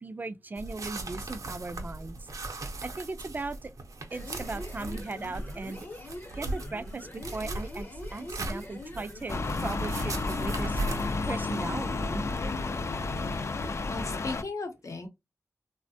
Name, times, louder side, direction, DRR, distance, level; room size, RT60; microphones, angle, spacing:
voice 1, 0.0-2.2 2.8-3.7 4.1-5.9 6.3-10.8 11.3-12.2, right 3 dB, 35° right, 0.3 m, -38 dB
sound 1, 0.6-12.4, right 2 dB, 90° right, 0.6 m, -39 dB
sound 2, 4.0-13.8, left 2 dB, 40° left, 0.7 m, -44 dB
sound 3, 9.3-14.4, left 3 dB, 55° left, 0.4 m, -31 dB
voice 2, 13.9-15.1, left 3 dB, 75° left, 0.8 m, -36 dB
3.3 x 2.1 x 2.6 m
wide cardioid pair, 95°, 6 cm